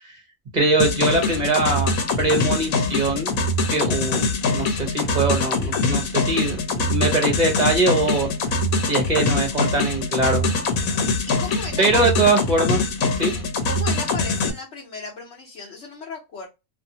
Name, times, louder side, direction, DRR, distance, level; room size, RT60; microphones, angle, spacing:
voice 1, 0.5-1.9 2.2-3.4 3.7-8.3 8.9-10.5 11.8-12.8 13.2-13.3, right 2 dB, 35° right, 1 dB, 0.8 m, -22 dB
sound 1, 0.8-14.5, left 3 dB, 85° left, 1.1 m, -23 dB
voice 2, 11.4-12.1 13.6-16.5, left 4 dB, 60° left, -2 dB, 1.1 m, -35 dB
2.6 x 2.6 x 2.7 m, 0.24 s
omnidirectional pair, 1.4 m